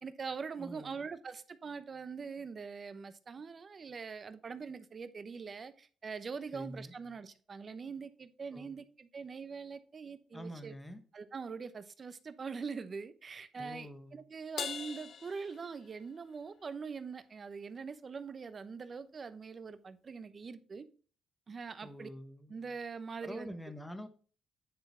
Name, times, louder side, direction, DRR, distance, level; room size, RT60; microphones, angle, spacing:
voice 1, 0.0-10.7 11.1-20.9 21.5-22.1 22.5-23.5, right 5 dB, 40° right, 0.8 m, -43 dB
voice 2, 0.6-1.1 6.5-6.9 8.5-8.8 10.3-11.0 13.6-14.2 21.8-22.5 23.2-24.1, equal, 10° left, 1.1 m, -46 dB
Crash cymbal, 14.6-16.3, left 8 dB, 60° left, 0.5 m, -42 dB
9.7 x 3.8 x 4.4 m
cardioid pair, 90°, 0 cm